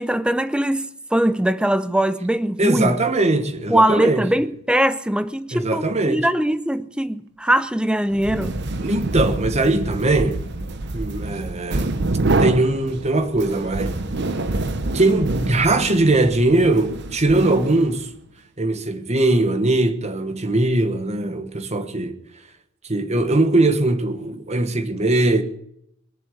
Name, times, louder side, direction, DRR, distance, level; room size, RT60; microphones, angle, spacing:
voice 1, 0.0-3.0 3.7-8.6 21.3-21.5, right 1 dB, 5° right, 0.5 m, -21 dB
voice 2, 2.6-4.2 5.5-6.3 8.8-10.4 10.9-11.9 12.4-14.0 14.9-18.1 18.6-22.2 22.9-25.4, right 2 dB, 35° right, 1.2 m, -20 dB
sound 1, 8.1-18.1, right 2 dB, 60° right, 0.9 m, -26 dB
21.5 x 7.5 x 8.2 m
head